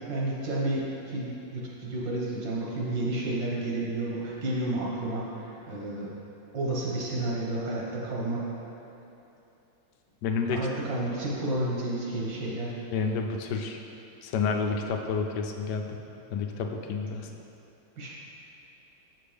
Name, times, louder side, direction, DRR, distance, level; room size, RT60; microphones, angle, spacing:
voice 1, 0.1-6.1 6.5-8.4 10.5-12.7 18.0-18.1, right 1 dB, 90° right, -5 dB, 2.1 m, -31 dB
voice 2, 10.2-10.6 12.9-13.8 14.2-16.0 16.3-17.3, left 5 dB, 75° left, 3 dB, 1.1 m, -29 dB
6.7 x 6.7 x 3.4 m, 2.9 s
omnidirectional pair, 1.9 m